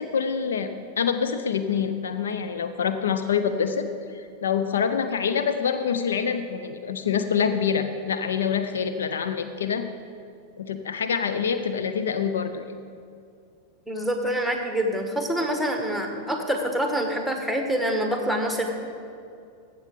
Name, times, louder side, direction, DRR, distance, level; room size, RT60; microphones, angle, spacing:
voice 1, 0.0-3.9 4.1-9.9 10.6-12.6, left 7 dB, 65° left, 9 dB, 0.5 m, -26 dB
voice 2, 13.9-18.7, equal, ahead, 3 dB, 1.5 m, -26 dB
15.5 x 6.9 x 5.2 m, 2.4 s
figure-of-eight pair, 90°, 0 cm